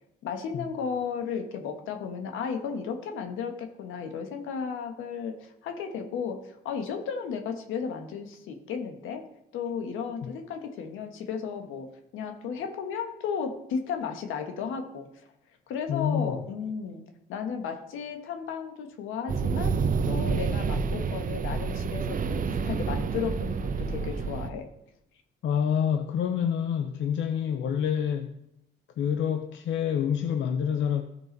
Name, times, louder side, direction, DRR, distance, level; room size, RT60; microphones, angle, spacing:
voice 1, 0.2-9.3 9.5-15.1 15.7-17.0 17.3-19.8 20.1-24.7, left 6 dB, 90° left, 1.4 m, -34 dB
voice 2, 15.9-16.4 25.4-28.3 29.0-31.0, left 8 dB, 70° left, 0.7 m, -27 dB
sound 1, 19.3-24.5, right 5 dB, 45° right, 0.8 m, -28 dB
14.5 x 5.0 x 4.0 m
cardioid pair, 90°, 20 cm